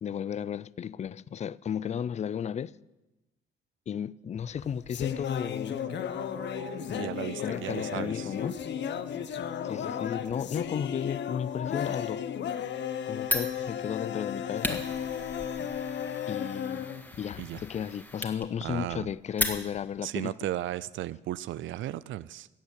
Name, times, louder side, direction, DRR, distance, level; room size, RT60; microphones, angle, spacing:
voice 1, 0.0-2.7 3.9-5.8 6.9-7.1 7.4-8.6 9.6-12.2 13.1-14.9 16.3-16.9 17.2-20.5, left 8 dB, 35° left, 0.4 m, -34 dB
sound 1, 4.4-17.8, left 9 dB, 65° left, 1.0 m, -35 dB
Dog, 4.7-10.4, right 5 dB, 55° right, 1.6 m, -49 dB
voice 2, 7.0-8.3 15.6-15.7 17.4-17.6 18.6-19.1 20.0-22.5, right 14 dB, 75° right, 0.4 m, -35 dB
Fire, 13.2-20.0, left 1 dB, 10° left, 1.9 m, -36 dB
14.5 x 8.2 x 8.7 m
cardioid pair, 90°, 20 cm